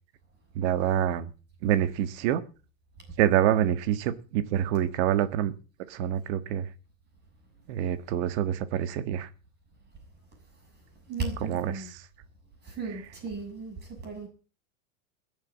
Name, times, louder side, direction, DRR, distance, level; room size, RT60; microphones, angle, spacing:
voice 1, 0.5-1.3 1.6-2.4 3.2-5.5 5.9-6.6 7.7-9.3 11.4-11.9, right 11 dB, 55° right, 1.6 m, -26 dB
voice 2, 11.1-11.9 12.6-13.7 14.0-14.3, right 4 dB, 25° right, 6.8 m, -35 dB
21.5 x 7.4 x 7.4 m
supercardioid pair, 140°, 39 cm